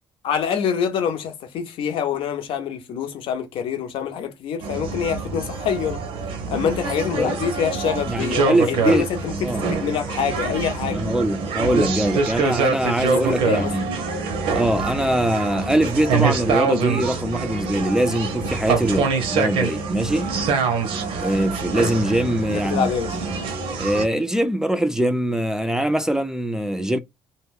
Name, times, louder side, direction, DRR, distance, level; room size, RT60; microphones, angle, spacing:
voice 1, 0.2-6.0 6.5-11.1 13.3-13.7 22.5-23.2, left 7 dB, 80° left, 0.7 m, -26 dB
sound 1, 4.6-24.1, right 4 dB, 85° right, 0.7 m, -25 dB
voice 2, 8.1-9.1 9.4-9.6 10.8-13.9 14.5-20.3 21.2-23.3 23.8-27.0, right 1 dB, 5° right, 0.4 m, -23 dB
2.2 x 2.2 x 3.4 m
cardioid pair, 95°, 9 cm